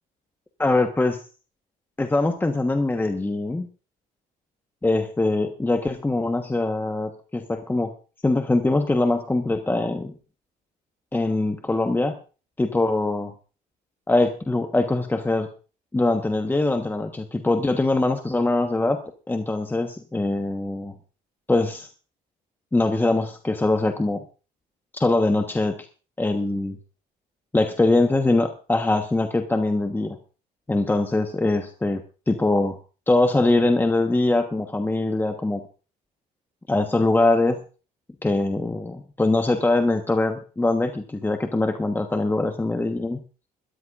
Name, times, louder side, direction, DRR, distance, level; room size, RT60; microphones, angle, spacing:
voice 1, 0.6-1.2 2.0-3.7 4.8-7.9 8.2-10.1 11.1-12.2 12.6-13.3 14.1-15.5 15.9-19.0 19.3-20.9 21.5-21.9 22.7-24.2 24.9-25.8 26.2-26.8 27.5-30.2 30.7-32.8 33.1-35.6 36.7-37.6 38.2-43.2, left 2 dB, 10° left, 6 dB, 1.3 m, -22 dB
21.5 x 13.5 x 2.6 m, 0.35 s
cardioid pair, 110°, 17 cm